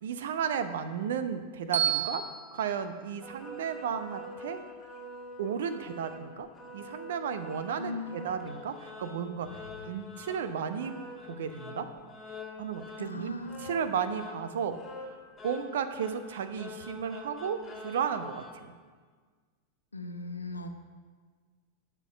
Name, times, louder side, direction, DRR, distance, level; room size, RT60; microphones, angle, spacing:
voice 1, 0.0-2.2 2.5-4.6 5.4-6.5 6.7-10.9 11.3-11.9 12.6-15.2 15.4-18.4, right 7 dB, 60° right, 11 dB, 0.7 m, -34 dB
Bell, 1.7-3.9, right 8 dB, 75° right, 1.2 m, -33 dB
sound 1, 3.2-18.5, left 2 dB, 15° left, 1.7 m, -46 dB
voice 2, 7.8-8.3 13.0-13.8 19.9-20.7, left 2 dB, 80° left, 6 dB, 0.8 m, -39 dB
12.0 x 4.6 x 7.0 m, 1.6 s
figure-of-eight pair, 90°, 0 cm